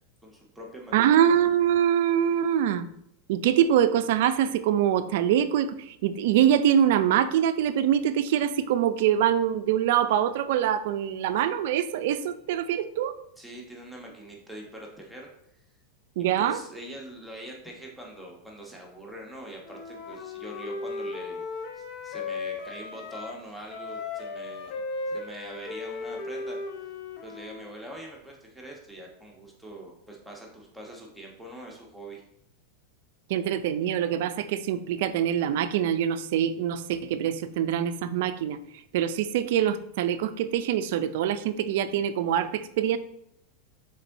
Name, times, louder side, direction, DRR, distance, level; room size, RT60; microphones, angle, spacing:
voice 1, 0.2-1.2 13.4-15.3 16.2-21.4 21.7-24.8 25.1-26.6 27.2-32.2, right 1 dB, ahead, -2 dB, 1.0 m, -43 dB
voice 2, 0.9-2.9 3.3-13.1 16.2-16.6 33.3-38.6 38.9-43.0, right 10 dB, 65° right, 12 dB, 0.3 m, -24 dB
Wind instrument woodwind instrument, 19.6-23.4 23.7-27.7, left 3 dB, 55° left, 0.7 m, -36 dB
4.0 x 3.7 x 2.6 m, 0.75 s
hypercardioid pair, 105°, 0 cm